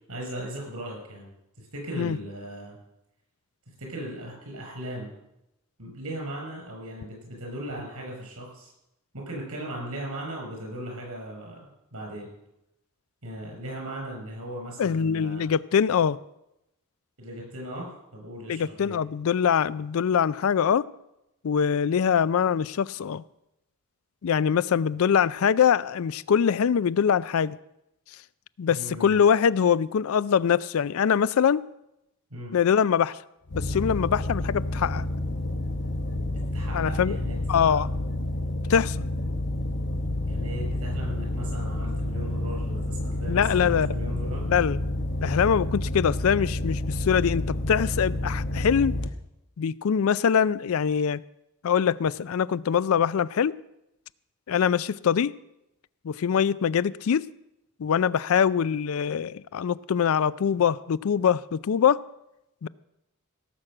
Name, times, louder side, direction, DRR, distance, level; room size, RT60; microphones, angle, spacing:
voice 1, 0.1-1.3 1.6-2.8 3.8-5.1 5.8-8.7 9.1-12.3 13.2-15.4 17.2-19.0 28.7-29.2 32.3-32.5 36.3-37.7 40.3-44.5, right 1 dB, 80° right, 6.3 m, -38 dB
voice 2, 14.8-16.2 18.5-20.8 21.4-23.2 24.2-27.6 28.6-31.6 32.5-33.2 33.5-35.1 36.7-37.2 37.5-37.9 38.7-39.0 43.3-43.9 44.5-44.8 45.2-48.9 49.6-51.2 51.6-53.5 54.5-55.3 56.0-57.3 57.8-62.0 62.6-62.7, left 7 dB, 75° left, 0.4 m, -23 dB
sound 1, 33.5-49.1, left 1 dB, 55° left, 0.8 m, -29 dB
17.0 x 6.0 x 7.7 m
head